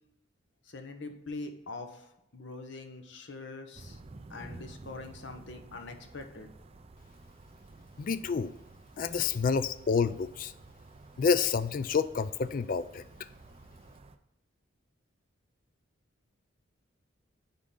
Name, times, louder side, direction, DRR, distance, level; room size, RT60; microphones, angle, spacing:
voice 1, 0.7-2.1 2.3-4.0 4.3-6.5, left 3 dB, 60° left, 6 dB, 0.9 m, -43 dB
sound 1, 3.7-14.2, right 2 dB, 30° right, 0.4 m, -52 dB
voice 2, 8.0-8.5 9.0-10.5 11.2-13.0, left 5 dB, 40° left, 14 dB, 0.3 m, -28 dB
9.9 x 3.8 x 3.7 m, 0.90 s
head